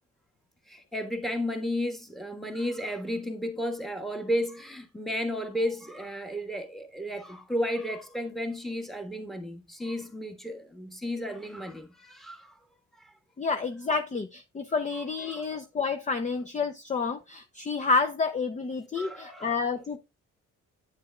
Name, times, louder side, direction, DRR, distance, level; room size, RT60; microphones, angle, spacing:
voice 1, 0.7-12.6 13.0-13.1 15.3-15.4 18.9-19.6, equal, ahead, 1.5 m, -33 dB
voice 2, 13.4-20.0, left 4 dB, 25° left, 0.6 m, -29 dB
9.5 x 6.7 x 2.3 m
cardioid pair, 90°, 30 cm